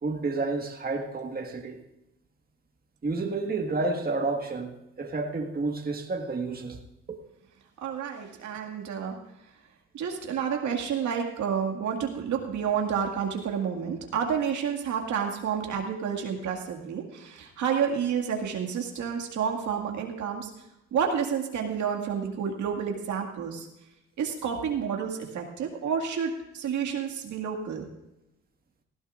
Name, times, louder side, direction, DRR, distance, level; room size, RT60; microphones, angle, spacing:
voice 1, 0.0-1.8 3.0-6.8 7.1-7.2, right 3 dB, 30° right, 1.7 m, -30 dB
voice 2, 7.8-9.2 9.9-20.5 20.9-23.7 24.2-27.8, right 7 dB, 75° right, 2.1 m, -30 dB
19.0 x 15.0 x 2.5 m
cardioid pair, 90°, 30 cm